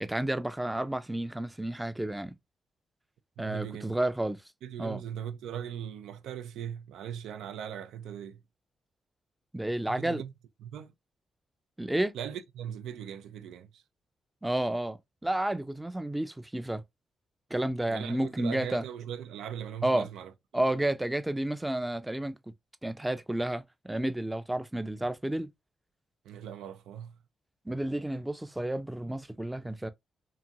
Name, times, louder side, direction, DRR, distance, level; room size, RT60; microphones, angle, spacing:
voice 1, 0.0-2.3 3.4-4.4 4.8-5.0 9.5-10.2 11.8-12.1 14.4-16.8 17.5-18.8 19.8-20.1 20.5-22.5 22.8-25.5 27.7-29.9, right 1 dB, 10° right, 0.4 m, -31 dB
voice 2, 3.4-4.0 4.6-8.4 9.9-10.3 10.6-10.9 12.1-13.8 17.9-20.9 26.2-27.2, right 9 dB, 90° right, 0.3 m, -40 dB
2.9 x 2.5 x 2.3 m
cardioid pair, 65°, 0 cm